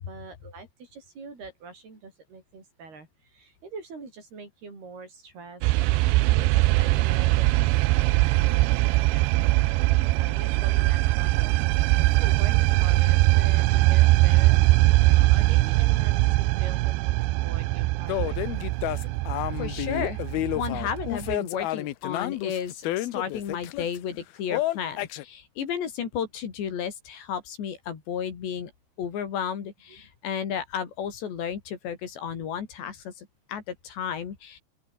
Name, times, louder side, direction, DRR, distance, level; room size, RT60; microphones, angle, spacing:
voice 1, 0.0-9.6 10.2-14.6 15.1-17.1 17.4-18.4, right 4 dB, 65° right, 9.9 m, -44 dB
sound 1, 5.6-21.4, right 20 dB, 90° right, 2.9 m, -21 dB
sound 2, 18.1-24.0 24.5-25.2, left 15 dB, 70° left, 2.7 m, -30 dB
voice 2, 19.6-20.2 20.6-28.7 29.0-34.6, left 8 dB, 85° left, 5.8 m, -33 dB
open air
omnidirectional pair, 4.8 m